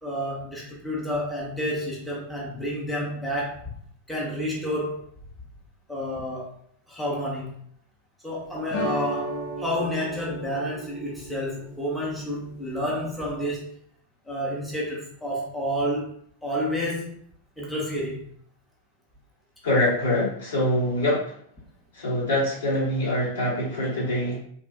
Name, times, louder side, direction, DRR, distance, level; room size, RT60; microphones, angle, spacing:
voice 1, 0.0-3.7 4.1-5.1 5.9-6.5 6.9-7.6 8.2-13.7 14.2-16.1 16.4-17.2 17.6-18.3, equal, ahead, -5 dB, 0.7 m, -30 dB
sound 1, 8.7-13.6, right 1 dB, 40° left, 0.6 m, -35 dB
voice 2, 19.6-21.3 21.9-24.4, left 1 dB, 65° left, -6 dB, 1.2 m, -24 dB
2.9 x 2.2 x 2.5 m, 0.63 s
figure-of-eight pair, 90°, 0 cm